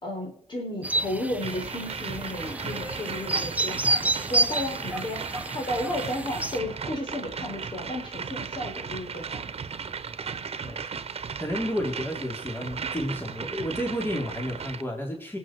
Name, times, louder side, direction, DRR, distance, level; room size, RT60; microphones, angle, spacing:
voice 1, 0.0-9.5 10.7-10.8, left 1 dB, 50° left, 1 dB, 4.2 m, -33 dB
sound 1, 0.8-6.6, right 2 dB, 15° right, 0.9 m, -29 dB
sound 2, 1.4-14.8, right 6 dB, 70° right, 1.0 m, -36 dB
voice 2, 10.6-11.0 11.4-15.4, equal, 20° left, 0 dB, 3.9 m, -31 dB
25.5 x 8.5 x 4.7 m, 0.63 s
wide cardioid pair, 85°, 11 cm